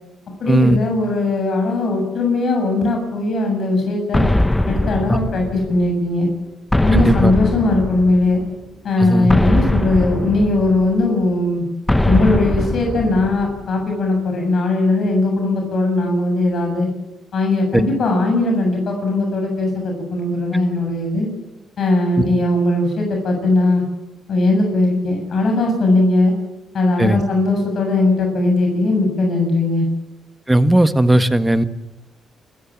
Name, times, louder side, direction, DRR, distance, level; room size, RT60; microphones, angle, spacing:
voice 1, 0.4-4.2 4.7-6.3 6.8-8.4 8.8-11.6 12.0-16.9 17.3-21.3 21.8-23.8 24.3-26.3 26.7-29.9, left 2 dB, 55° left, 3 dB, 7.5 m, -19 dB
sound 1, 4.1-5.9 6.7-8.4 9.3-11.1 11.9-13.7, left 1 dB, 10° left, 0.9 m, -20 dB
voice 2, 6.9-7.3 9.0-9.3 27.0-27.2 30.5-31.6, right 1 dB, 10° right, 10 dB, 1.6 m, -16 dB
27.5 x 15.0 x 8.8 m, 0.97 s
cardioid pair, 90°, 0 cm